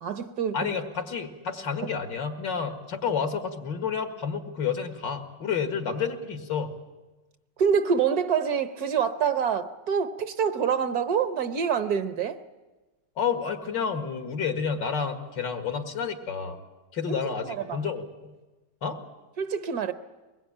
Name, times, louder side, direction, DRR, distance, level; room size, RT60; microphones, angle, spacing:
voice 1, 0.0-0.7 7.6-12.4 17.1-17.2 17.4-17.8 19.4-19.9, right 7 dB, 60° right, 1.4 m, -26 dB
voice 2, 0.5-6.7 13.2-16.6 16.9-18.3 18.8-19.0, left 6 dB, 80° left, 2.5 m, -30 dB
23.5 x 20.5 x 8.7 m
omnidirectional pair, 1.9 m